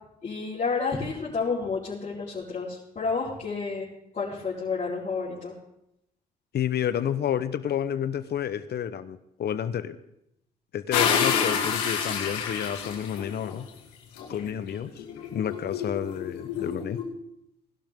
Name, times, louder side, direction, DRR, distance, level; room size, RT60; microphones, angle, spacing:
voice 1, 0.2-3.9 4.1-5.5 11.1-11.4, left 4 dB, 40° left, -8 dB, 4.4 m, -30 dB
voice 2, 6.5-10.0 10.7-13.7 14.3-15.0 15.3-17.0, left 9 dB, 60° left, 13 dB, 1.0 m, -30 dB
sound 1, 10.9-13.5 14.2-17.0, left 7 dB, 85° left, 2.2 m, -29 dB
19.0 x 11.5 x 3.8 m, 0.79 s
hypercardioid pair, 55°, 19 cm